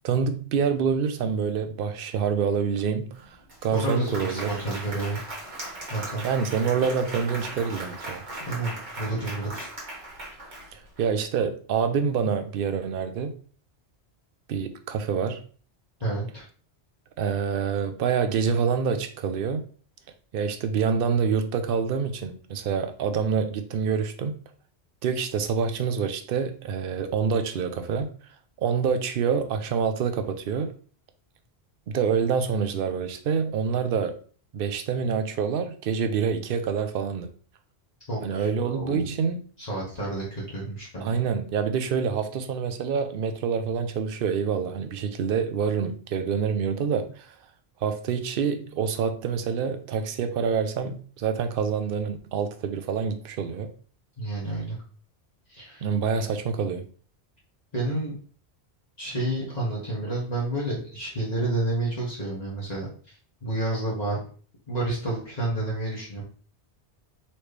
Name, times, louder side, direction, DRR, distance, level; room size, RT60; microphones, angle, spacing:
voice 1, 0.0-3.1 3.6-4.6 6.2-8.2 10.7-13.3 14.5-15.4 17.2-19.6 20.3-24.3 25.0-28.1 28.6-30.7 31.9-34.2 34.5-37.3 38.2-39.5 41.0-47.3 47.8-53.7 55.8-56.9, right 6 dB, 60° right, 0.7 m, -26 dB
Applause, 3.1-3.2 3.5-11.0, right 1 dB, 45° right, 1.5 m, -38 dB
voice 2, 3.7-5.2 5.9-6.3 8.5-9.7 16.0-16.4 38.1-39.1 39.6-41.2 54.2-54.8 55.5-55.8 57.7-58.1 59.0-62.9 63.4-64.2 64.7-66.2, right 2 dB, 40° left, 1.4 m, -30 dB
4.2 x 3.1 x 3.3 m
omnidirectional pair, 1.1 m